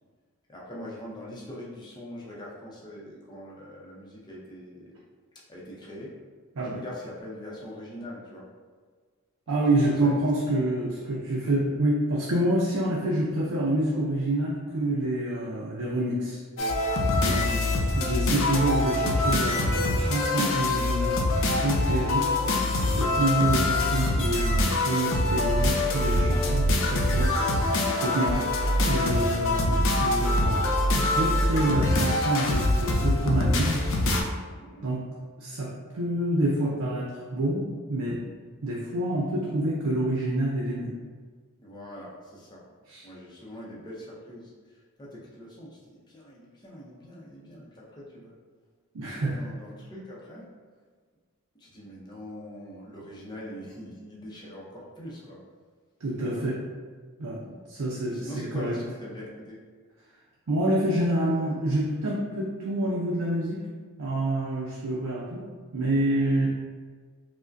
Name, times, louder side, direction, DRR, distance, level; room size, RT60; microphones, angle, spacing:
voice 1, 0.5-4.9 5.5-6.2 6.6-8.5 9.8-10.1 34.6-34.9 41.6-42.6 43.0-44.5 45.0-48.3 49.0-50.4 51.5-55.4 56.1-56.5 57.3-57.6 58.1-59.6, equal, 20° left, -6 dB, 0.6 m, -42 dB
voice 2, 9.5-16.4 17.2-17.5 17.9-22.3 23.0-27.4 28.0-30.7 30.9-33.8 34.8-35.0 35.4-37.6 37.9-38.2 38.6-41.0 42.9-43.0 48.9-49.4 56.0-56.6 57.2-57.4 57.7-58.7 60.5-63.6 64.0-65.4 65.7-66.5, right 1 dB, 80° right, -5 dB, 0.5 m, -27 dB
sound 1, 16.6-34.2, left 1 dB, 65° left, 0.5 m, -24 dB
4.8 x 2.1 x 2.5 m, 1.5 s
head